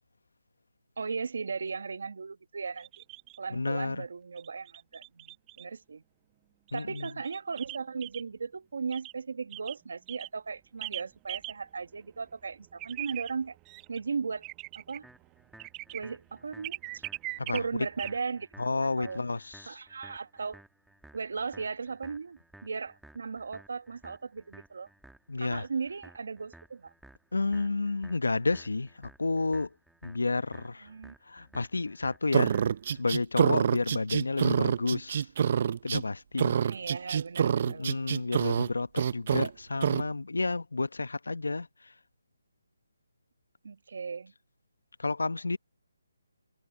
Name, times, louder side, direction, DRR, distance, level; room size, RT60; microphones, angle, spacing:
voice 1, 1.0-2.9 3.4-6.0 6.7-13.6 13.9-14.5 14.7-15.1 15.9-17.0 17.5-18.5 19.0-19.2 19.7-20.6 21.1-24.9 25.4-26.9 30.8-31.1 36.6-38.0 43.6-44.3, right 5 dB, 65° right, 1.4 m, -37 dB
sound 1, 2.8-3.4 4.4-5.6 6.7-8.2 8.9-9.1 9.5-9.7 10.1-10.3 10.8-11.0 11.3-11.5 11.9-12.0 12.3-12.4 12.5-18.1, right 21 dB, 15° right, 1.0 m, -41 dB
voice 2, 3.5-4.0 6.7-7.1 17.4-17.9 18.6-19.8 25.3-25.7 27.3-29.7 30.0-30.9 31.2-32.6 32.9-35.3 35.8-36.6 37.6-41.9 45.0-45.6, left 3 dB, 90° left, 1.0 m, -31 dB
sound 2, 15.0-33.0, right 1 dB, ahead, 2.1 m, -56 dB
sound 3, 32.3-36.0 36.4-38.7 39.0-39.5 39.8-40.0, right 8 dB, 45° right, 0.6 m, -26 dB
hypercardioid pair, 160°, 0 cm